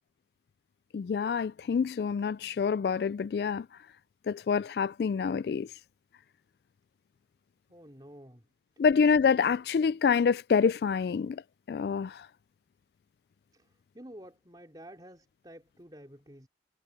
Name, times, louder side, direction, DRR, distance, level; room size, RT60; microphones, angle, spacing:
voice 1, 0.9-3.7 4.3-5.7 8.8-11.4 11.7-12.2, left 6 dB, 60° left, 0.3 m, -26 dB
voice 2, 7.7-8.4 13.5-13.7 13.9-16.5, equal, 25° right, 3.4 m, -50 dB
head